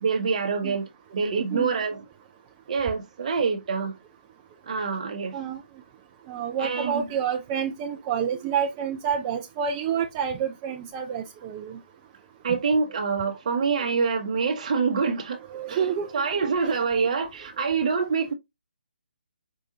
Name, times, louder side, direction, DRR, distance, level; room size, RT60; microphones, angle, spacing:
voice 1, 0.0-2.0 2.7-3.9 4.7-5.4 6.6-7.1 12.4-15.4 15.7-15.9 16.1-18.3, right 5 dB, 45° right, 0.8 m, -26 dB
voice 2, 6.3-11.8 15.5-16.1 16.6-16.7, right 7 dB, 20° right, 0.4 m, -28 dB
4.7 x 2.4 x 2.7 m
figure-of-eight pair, 145°, 5 cm